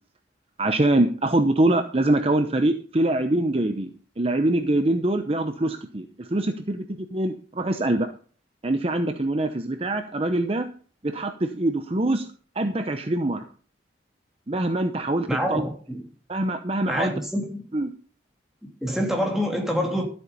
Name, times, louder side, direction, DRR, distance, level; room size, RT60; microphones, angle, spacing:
voice 1, 0.6-6.8 7.1-8.1 8.6-10.7 11.0-12.3 12.6-13.4 14.5-15.6 16.3-17.1 17.7-17.9, right 1 dB, 30° right, 0.8 m, -24 dB
voice 2, 15.3-16.0 16.9-17.6 18.6-20.1, equal, ahead, 3.2 m, -26 dB
13.0 x 8.0 x 5.5 m
head